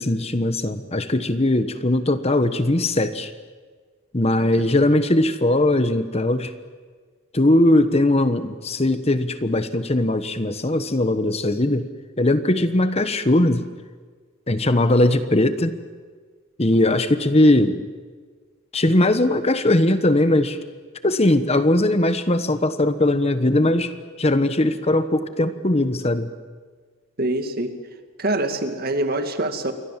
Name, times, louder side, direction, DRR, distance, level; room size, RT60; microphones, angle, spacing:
voice 1, 0.0-3.3 4.1-6.5 7.3-11.9 12.2-13.7 14.5-15.7 16.6-17.8 18.7-20.6 21.0-23.9 24.2-26.3, left 1 dB, 30° left, 11 dB, 1.2 m, -19 dB
voice 2, 27.2-27.8 28.2-29.7, right 1 dB, 50° right, 7 dB, 2.2 m, -24 dB
28.5 x 23.0 x 7.5 m, 1.5 s
head